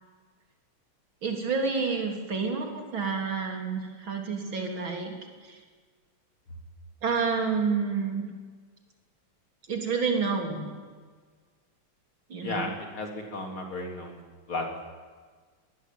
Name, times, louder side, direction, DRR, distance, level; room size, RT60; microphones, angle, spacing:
voice 1, 1.2-5.1 5.5-5.6 7.0-8.2 9.7-10.7 12.3-12.6, right 5 dB, 65° right, 2 dB, 4.3 m, -29 dB
voice 2, 12.4-14.2 14.5-14.9, left 2 dB, 75° left, 2 dB, 4.5 m, -34 dB
22.5 x 19.5 x 9.4 m, 1.5 s
omnidirectional pair, 2.3 m